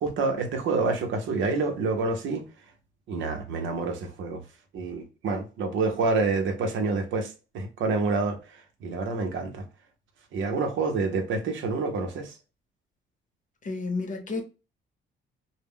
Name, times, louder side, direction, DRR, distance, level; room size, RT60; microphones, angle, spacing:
voice 1, 0.0-2.5 3.1-4.4 4.7-9.6 10.3-12.4, right 3 dB, 75° right, 0.7 m, -28 dB
voice 2, 13.6-14.4, left 3 dB, 40° left, 0.7 m, -31 dB
2.1 x 2.1 x 3.5 m
cardioid pair, 90°, 20 cm